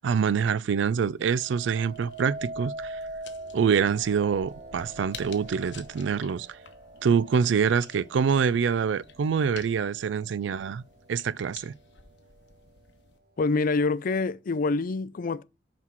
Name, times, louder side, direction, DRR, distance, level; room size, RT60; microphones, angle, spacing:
voice 1, 0.0-3.0 3.5-6.6 7.0-10.8 11.1-11.7, right 6 dB, 70° right, 0.4 m, -25 dB
sound 1, 1.1-13.2, left 6 dB, 65° left, 1.0 m, -51 dB
sound 2, 1.3-10.5 11.0-11.5, right 2 dB, 55° right, 1.1 m, -43 dB
voice 2, 13.4-15.4, left 3 dB, 50° left, 0.4 m, -26 dB
5.8 x 4.6 x 5.8 m
head